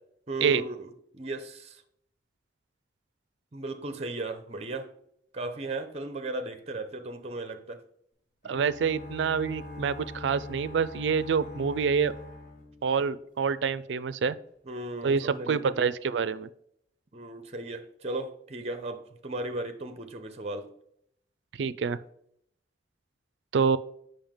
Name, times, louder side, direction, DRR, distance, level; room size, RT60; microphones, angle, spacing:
voice 1, 0.3-1.8 3.5-4.9 5.3-7.8 14.6-15.9 17.1-20.7, right 2 dB, 35° right, 0.7 m, -36 dB
sound 1, 8.4-13.4, left 2 dB, 45° left, 2.3 m, -43 dB
voice 2, 8.4-12.1 12.8-14.4 15.0-16.5 21.6-22.0 23.5-23.8, right 6 dB, 75° right, 0.4 m, -27 dB
7.1 x 5.6 x 3.6 m
head